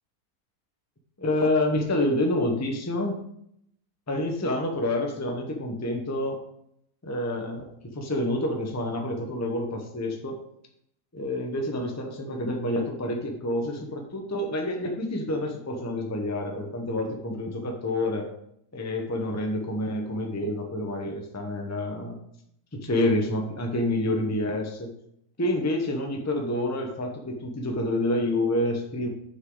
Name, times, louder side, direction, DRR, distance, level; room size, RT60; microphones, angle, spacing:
voice 1, 1.2-3.2 4.1-6.4 7.0-7.7 7.9-10.4 11.1-18.3 18.7-22.2 22.7-24.9 25.4-29.1, left 1 dB, 15° left, 2 dB, 0.9 m, -28 dB
8.1 x 6.6 x 4.0 m, 0.74 s
omnidirectional pair, 1.6 m